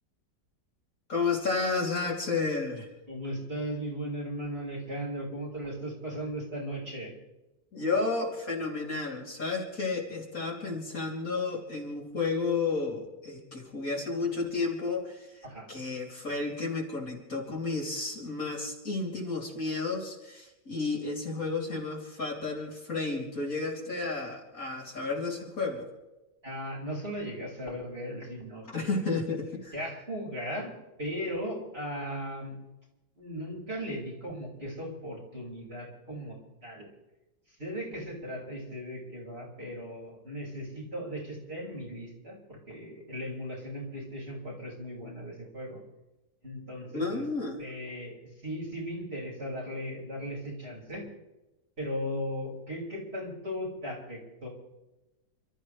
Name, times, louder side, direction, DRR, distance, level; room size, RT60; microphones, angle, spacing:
voice 1, 1.1-2.9 7.7-25.9 28.7-29.7 46.9-47.6, left 3 dB, 50° left, -2 dB, 3.6 m, -32 dB
voice 2, 3.1-7.1 15.4-15.7 26.4-28.9 29.7-30.7 31.0-32.5 33.1-36.4 36.6-36.9 37.6-45.8 46.4-47.2 47.6-48.2 48.4-51.0 51.8-54.5, equal, 35° right, -4 dB, 6.1 m, -37 dB
29.0 x 13.5 x 3.4 m, 1.0 s
omnidirectional pair, 1.9 m